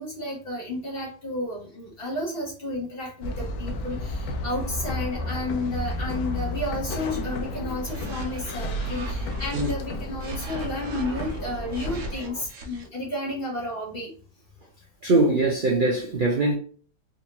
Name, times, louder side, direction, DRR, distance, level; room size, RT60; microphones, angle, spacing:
voice 1, 0.0-14.1, left 1 dB, 35° left, 1.2 m, -32 dB
sound 1, 3.2-12.1, left 1 dB, 70° left, 1.0 m, -32 dB
sound 2, 7.8-9.7 10.2-12.9, right 1 dB, 60° right, 0.9 m, -38 dB
voice 2, 15.0-16.5, right 2 dB, 80° right, 0.4 m, -22 dB
3.7 x 2.5 x 2.8 m
omnidirectional pair, 1.8 m